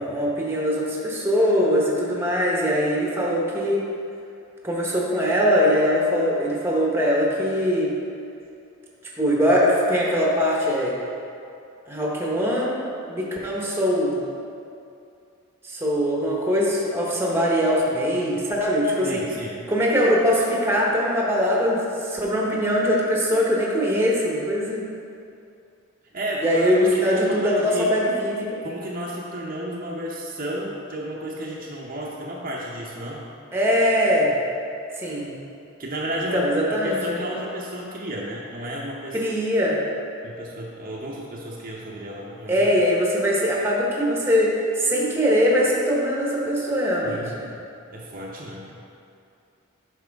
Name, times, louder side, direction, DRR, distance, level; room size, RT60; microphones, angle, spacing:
voice 1, 0.0-3.8 4.6-7.9 9.2-11.0 11.9-12.8 13.1-14.2 15.6-19.3 19.7-24.8 26.4-28.5 33.5-34.4 35.0-35.4 36.3-37.0 39.1-39.8 42.5-47.5, equal, 10° right, -3 dB, 1.0 m, -22 dB
voice 2, 19.0-19.6 26.1-27.9 28.6-33.2 35.8-39.2 40.2-42.7 47.0-47.4 47.9-48.7, right 1 dB, 40° right, -4 dB, 0.8 m, -32 dB
9.0 x 6.0 x 3.5 m, 2.6 s
head